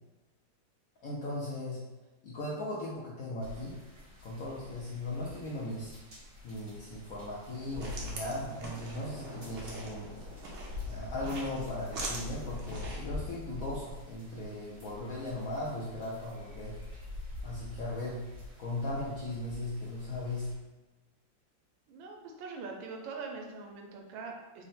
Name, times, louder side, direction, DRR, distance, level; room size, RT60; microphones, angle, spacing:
voice 1, 1.0-1.8 2.2-3.8 4.2-5.9 6.4-10.2 10.9-16.8 17.4-18.2 18.6-20.5, left 1 dB, 70° left, -5 dB, 0.8 m, -37 dB
sound 1, 3.4-20.5, left 2 dB, 50° right, 1.6 m, -46 dB
sound 2, 7.4-13.1, right 2 dB, 65° right, 0.7 m, -43 dB
voice 2, 21.9-24.6, right 4 dB, 85° right, 2 dB, 1.4 m, -43 dB
3.7 x 2.1 x 4.1 m, 1.2 s
omnidirectional pair, 2.1 m